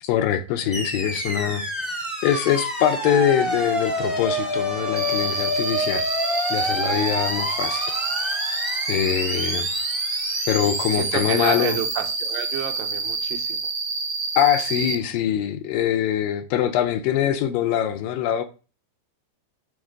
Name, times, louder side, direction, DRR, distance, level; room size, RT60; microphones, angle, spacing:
voice 1, 0.0-1.9 2.2-6.1 6.5-7.9 8.2-8.3 8.9-9.7 10.5-11.8 14.4-18.4, left 10 dB, 80° left, 2.2 m, -23 dB
sound 1, 0.7-13.0, equal, ahead, 0.6 m, -29 dB
Cricket, 5.0-15.0, right 4 dB, 60° right, 1.2 m, -28 dB
voice 2, 11.0-13.6, right 9 dB, 80° right, 2.2 m, -30 dB
7.2 x 3.6 x 6.2 m
omnidirectional pair, 4.3 m